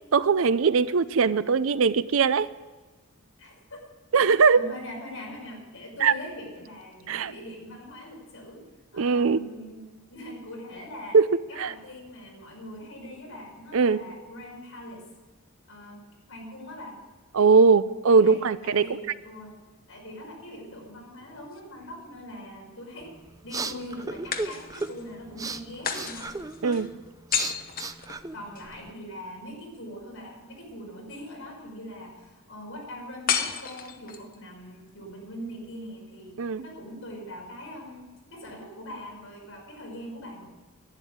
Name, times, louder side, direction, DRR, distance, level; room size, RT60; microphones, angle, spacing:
voice 1, 0.1-2.5 4.1-4.6 6.0-6.1 7.1-7.3 9.0-9.4 11.1-11.3 11.6-11.7 13.7-14.0 17.3-18.9 26.6-26.9 36.4-36.6, right 5 dB, 65° right, 15 dB, 0.5 m, -20 dB
voice 2, 3.4-3.8 4.5-8.6 8.9-11.2 11.5-15.1 15.7-16.0 16.3-17.0 18.1-19.6 19.9-23.2 23.4-26.4 28.3-40.5, equal, 65° left, -2 dB, 5.5 m, -42 dB
sound 1, 21.2-22.3 24.3-25.1 25.8-28.7 33.3-34.4, left 7 dB, 40° left, 1.0 m, -32 dB
sound 2, 23.0-28.9, right 3 dB, 15° right, 0.5 m, -37 dB
11.5 x 10.0 x 8.7 m, 1.3 s
head